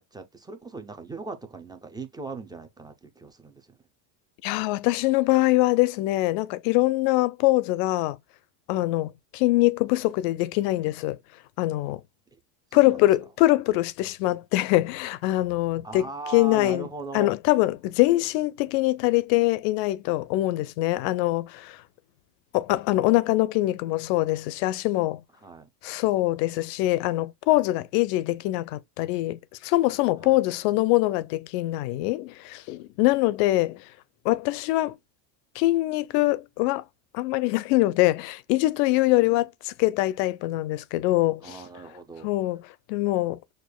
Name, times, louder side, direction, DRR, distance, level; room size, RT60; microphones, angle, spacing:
voice 1, 0.0-3.8 12.7-13.0 15.8-17.3 25.4-25.7 30.2-30.4 39.2-39.4 41.4-42.3, right 3 dB, 10° right, 0.5 m, -39 dB
voice 2, 4.4-8.2 8.7-11.2 11.6-12.0 12.7-16.9 17.1-21.8 22.5-25.2 25.8-33.8 34.2-35.0 35.6-36.8 37.1-41.6 42.2-43.4, left 18 dB, 80° left, 0.7 m, -23 dB
6.5 x 2.5 x 2.2 m
cardioid pair, 125°, 47 cm